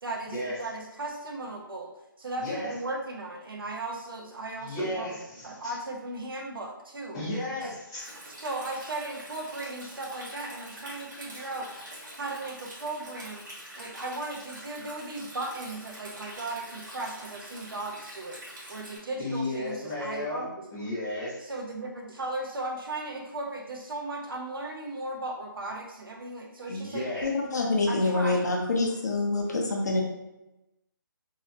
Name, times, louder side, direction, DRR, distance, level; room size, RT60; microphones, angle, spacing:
voice 1, 0.0-5.1 5.4-7.2 7.6-7.7 8.3-11.8 12.2-18.4 18.7-20.8 21.4-27.1 27.9-28.5, right 2 dB, 80° right, 1 dB, 0.6 m, -37 dB
voice 2, 2.4-2.7 4.6-5.7 7.1-8.1 19.2-20.4 20.7-21.4 26.7-27.3, left 1 dB, 10° left, -11 dB, 0.7 m, -33 dB
Stream, 8.0-19.0, right 1 dB, 60° right, 1.1 m, -45 dB
voice 3, 27.2-30.0, left 2 dB, 50° left, 0 dB, 0.5 m, -26 dB
2.7 x 2.0 x 2.6 m, 0.94 s
hypercardioid pair, 175°, 11 cm